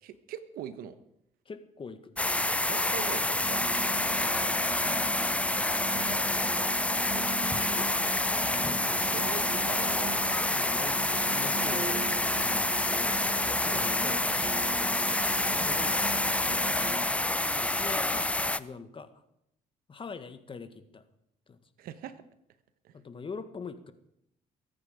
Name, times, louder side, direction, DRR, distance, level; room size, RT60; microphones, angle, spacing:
voice 1, 0.0-1.0 2.6-3.7 8.9-10.5 13.6-13.8 21.8-22.1 22.8-22.9, right 10 dB, 75° right, 12 dB, 1.3 m, -41 dB
voice 2, 1.4-2.1 5.9-6.4 7.7-7.9 10.5-14.3 15.5-16.2 17.6-18.3 18.6-19.1 19.9-21.0 21.5-21.6 22.9-23.9, left 5 dB, 35° left, 10 dB, 1.6 m, -42 dB
sound 1, 2.2-18.6, left 2 dB, 10° left, 0.6 m, -28 dB
sound 2, 3.4-17.1, right 5 dB, 30° right, 1.8 m, -40 dB
22.5 x 9.7 x 5.1 m, 0.76 s
supercardioid pair, 80°, 15 cm